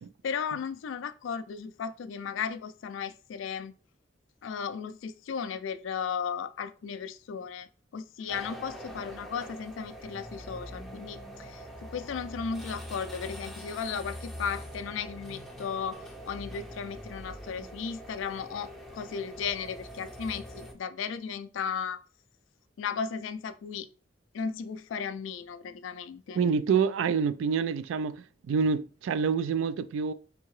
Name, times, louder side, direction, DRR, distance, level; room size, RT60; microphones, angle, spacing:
voice 1, 0.2-3.7 4.4-7.7 7.9-22.0 22.8-23.9 24.3-26.4, left 6 dB, 80° left, 0.3 m, -35 dB
sound 1, 8.3-20.7, equal, ahead, 0.4 m, -43 dB
voice 2, 26.3-30.1, right 6 dB, 85° right, 0.3 m, -27 dB
3.5 x 2.7 x 3.0 m
head